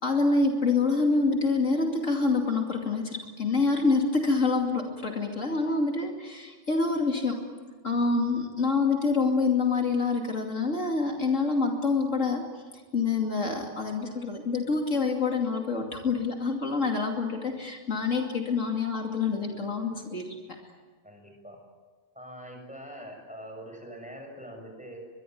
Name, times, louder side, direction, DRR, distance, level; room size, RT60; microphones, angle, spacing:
voice 1, 0.0-7.4 7.8-12.4 12.9-20.3, left 4 dB, 65° left, 2 dB, 3.0 m, -26 dB
voice 2, 21.0-21.6 22.1-25.0, equal, 5° right, 2 dB, 7.1 m, -43 dB
23.0 x 22.5 x 9.4 m, 1.4 s
omnidirectional pair, 1.4 m